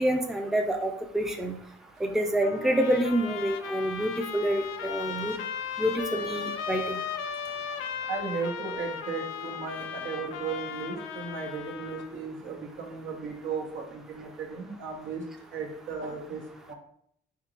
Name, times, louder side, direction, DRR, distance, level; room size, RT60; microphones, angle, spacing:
voice 1, 0.0-1.6 2.0-5.4 5.8-7.0, right 1 dB, ahead, 4 dB, 0.5 m, -27 dB
Trumpet, 2.4-12.1, left 7 dB, 90° left, 0.4 m, -36 dB
voice 2, 8.0-15.3 15.5-16.4 16.7-16.8, right 5 dB, 75° right, 1 dB, 1.0 m, -35 dB
3.9 x 3.6 x 2.9 m, 0.68 s
cardioid pair, 90°, 20 cm